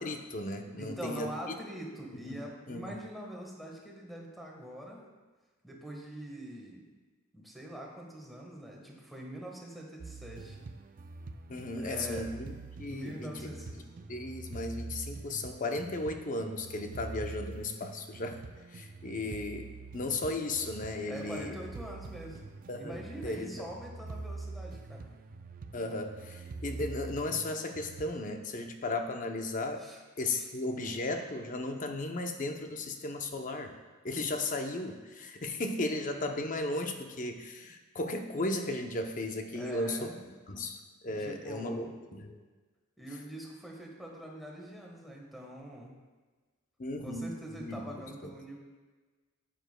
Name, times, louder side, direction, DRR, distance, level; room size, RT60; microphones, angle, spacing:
voice 1, 0.0-1.6 2.2-2.4 2.7-2.9 11.5-13.5 14.1-18.4 18.7-21.6 22.7-23.7 25.7-29.9 30.2-33.7 34.0-42.4 46.8-48.3, left 2 dB, 35° left, 5 dB, 0.7 m, -36 dB
voice 2, 0.7-5.1 5.6-6.9 7.3-10.7 11.7-12.3 12.9-13.7 14.0-14.1 21.1-25.1 29.8-30.0 30.3-30.5 39.5-40.2 41.0-41.9 43.0-45.9 47.0-48.6, equal, ahead, -1 dB, 1.3 m, -44 dB
sound 1, 10.0-28.1, right 3 dB, 40° right, 0.3 m, -45 dB
11.0 x 9.1 x 2.2 m, 1.3 s
head